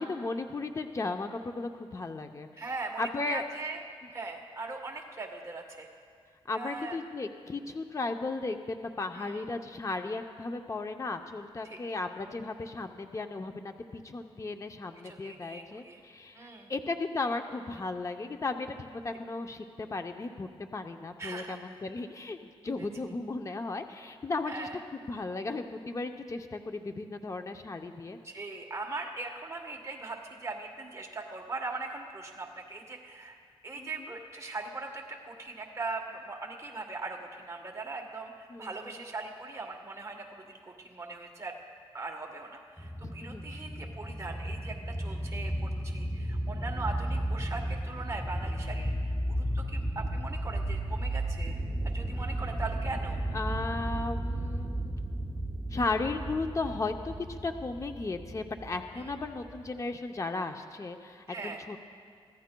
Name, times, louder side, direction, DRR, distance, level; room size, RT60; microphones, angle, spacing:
voice 1, 0.0-2.5 3.0-3.4 6.5-22.4 22.6-28.2 33.8-34.1 38.5-39.0 43.0-43.4 53.3-54.9 55.7-61.8, left 3 dB, 30° left, 6 dB, 0.7 m, -35 dB
voice 2, 2.6-3.8 4.1-5.9 6.5-7.0 9.1-9.4 11.6-11.8 15.0-16.0 16.3-16.7 21.2-21.8 22.6-22.7 24.4-24.8 28.2-33.4 33.6-41.5 41.9-53.2 58.9-59.1 61.3-61.6, right 3 dB, 30° right, 1 dB, 1.2 m, -40 dB
sound 1, 42.8-59.8, right 1 dB, 5° right, 0.7 m, -34 dB
24.5 x 15.0 x 2.3 m, 2.2 s
wide cardioid pair, 95°, 10 cm